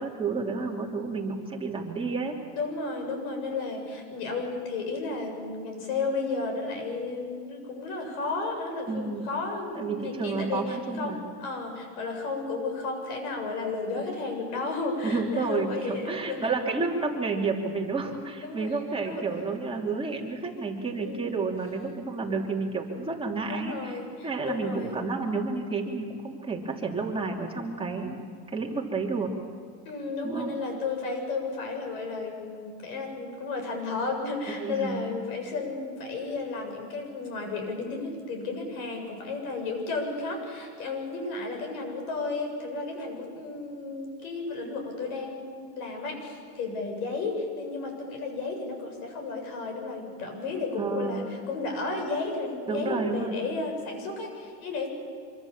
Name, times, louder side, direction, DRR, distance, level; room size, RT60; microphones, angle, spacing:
voice 1, 0.0-2.4 8.9-9.3 9.7-11.2 15.0-28.2 28.5-29.3 30.2-30.5 34.6-34.9 50.8-51.2 52.7-53.3, right 4 dB, 15° right, -1 dB, 2.9 m, -30 dB
voice 2, 2.5-16.4 18.1-18.7 19.0-19.4 20.9-21.3 23.5-25.0 29.9-54.9, left 3 dB, 90° left, 3 dB, 7.7 m, -33 dB
26.0 x 24.0 x 7.4 m, 2.3 s
cardioid pair, 150°, 43 cm